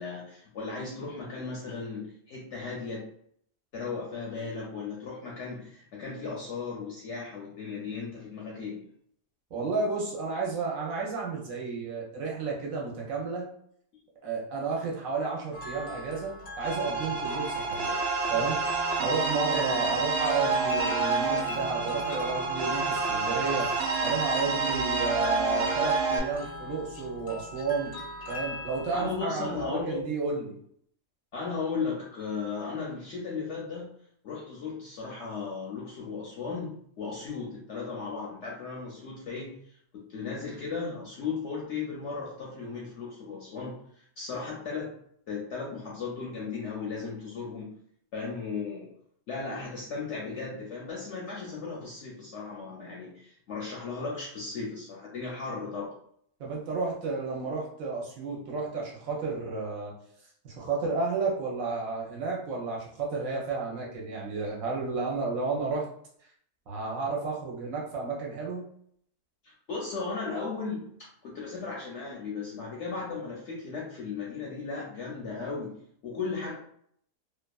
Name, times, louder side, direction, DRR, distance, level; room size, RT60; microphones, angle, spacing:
voice 1, 0.0-3.1 3.7-8.8 28.9-30.0 31.3-33.9 34.2-44.9 45.3-47.7 48.1-48.9 49.3-55.9 69.4-75.8 76.0-76.5, left 4 dB, 65° left, -3 dB, 0.7 m, -36 dB
voice 2, 9.5-13.5 14.2-18.0 18.3-18.6 19.0-23.7 24.0-27.9 28.3-30.6 56.4-59.9 60.4-65.9 66.7-68.6, right 4 dB, 65° right, -2 dB, 1.0 m, -32 dB
sound 1, 15.5-29.2, equal, 85° left, 1.2 m, -41 dB
sound 2, 16.6-26.2, right 4 dB, 80° right, 0.5 m, -28 dB
2.7 x 2.3 x 2.3 m, 0.66 s
omnidirectional pair, 1.7 m